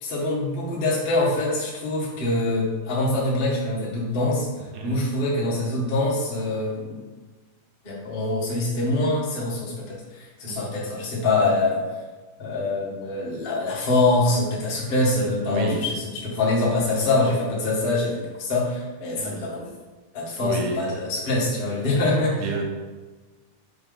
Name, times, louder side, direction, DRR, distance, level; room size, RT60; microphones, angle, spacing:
voice 1, 0.0-4.5 4.8-7.0 7.8-11.8 12.4-19.7 20.1-22.3, left 2 dB, 75° left, -6 dB, 0.5 m, -24 dB
voice 2, 15.5-15.8 19.2-19.4 20.4-20.8 22.4-22.6, right 4 dB, 70° right, 0 dB, 2.2 m, -31 dB
5.6 x 4.7 x 3.8 m, 1.3 s
omnidirectional pair, 3.8 m